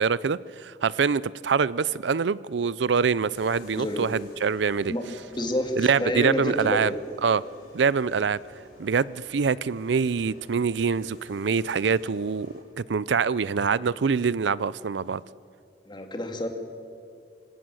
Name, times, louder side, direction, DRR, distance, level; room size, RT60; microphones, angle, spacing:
voice 1, 0.0-4.9 5.8-6.9 7.2-7.4 7.7-8.4 8.8-15.2, right 5 dB, 85° right, 20 dB, 0.5 m, -25 dB
sound 1, 3.3-12.6, equal, 55° left, 6.4 m, -51 dB
voice 2, 3.7-4.0 4.9-5.0 5.3-6.9 15.8-16.5, left 1 dB, 25° left, 5 dB, 2.4 m, -28 dB
25.5 x 17.0 x 7.8 m, 2.4 s
head